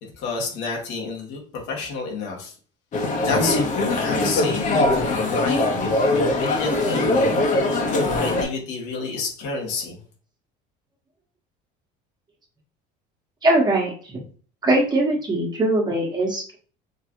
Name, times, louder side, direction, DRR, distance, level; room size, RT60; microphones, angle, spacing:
voice 1, 0.0-2.6 3.2-7.4 7.9-10.0, left 4 dB, 70° left, 0 dB, 1.8 m, -30 dB
sound 1, 2.9-8.4, left 2 dB, 40° left, 1.3 m, -21 dB
voice 2, 13.4-14.2 14.6-16.6, right 1 dB, 20° right, -1 dB, 1.5 m, -21 dB
4.8 x 3.2 x 3.1 m, 0.41 s
cardioid pair, 120°, 19 cm